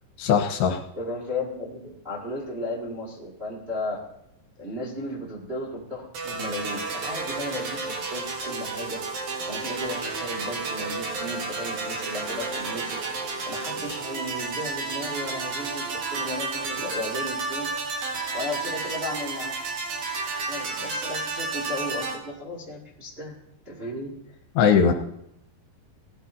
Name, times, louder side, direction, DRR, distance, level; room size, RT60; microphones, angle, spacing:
voice 1, 0.2-0.8 24.6-24.9, left 7 dB, 75° left, 2 dB, 3.1 m, -19 dB
voice 2, 0.9-4.0 4.6-9.0 9.5-13.0 13.4-17.7 18.3-19.5 20.5-23.3 23.6-24.1, left 1 dB, 25° right, -4 dB, 1.3 m, -35 dB
sound 1, 6.1-22.1, right 3 dB, 55° right, 2.7 m, -31 dB
19.0 x 13.5 x 2.8 m, 0.78 s
omnidirectional pair, 5.0 m